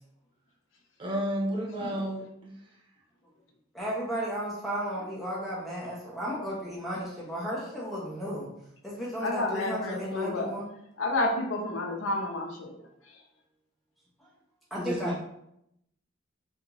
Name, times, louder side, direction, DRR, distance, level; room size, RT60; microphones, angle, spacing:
voice 1, 1.0-2.5 14.8-15.2, equal, 25° right, -2 dB, 0.5 m, -31 dB
voice 2, 3.7-8.5 8.8-10.7 14.7-15.2, equal, ahead, -7 dB, 0.8 m, -34 dB
voice 3, 9.2-10.5 11.0-12.7 13.1-13.2, left 2 dB, 80° left, 2 dB, 0.6 m, -30 dB
3.5 x 2.6 x 2.9 m, 0.78 s
head